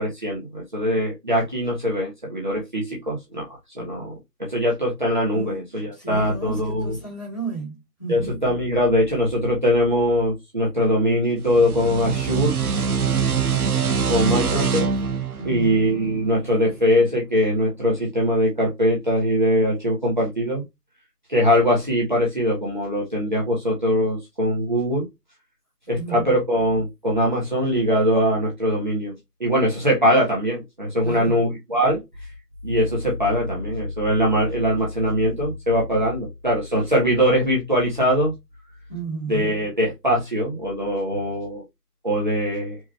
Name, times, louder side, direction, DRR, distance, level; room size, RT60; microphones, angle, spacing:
voice 1, 0.0-3.4 3.7-4.1 4.5-7.0 8.1-12.5 14.1-14.9 15.4-20.6 21.3-25.0 25.9-29.1 29.4-32.0 32.6-38.3 39.3-41.6 42.0-42.8, equal, 30° right, 1.4 m, -22 dB
voice 2, 5.9-8.4 15.4-15.9 25.9-26.3 31.0-31.4 38.9-39.6, right 4 dB, 10° left, 1.8 m, -33 dB
sound 1, 11.4-16.7, right 6 dB, 65° right, 0.6 m, -24 dB
4.6 x 3.2 x 3.3 m
figure-of-eight pair, 170°, 49 cm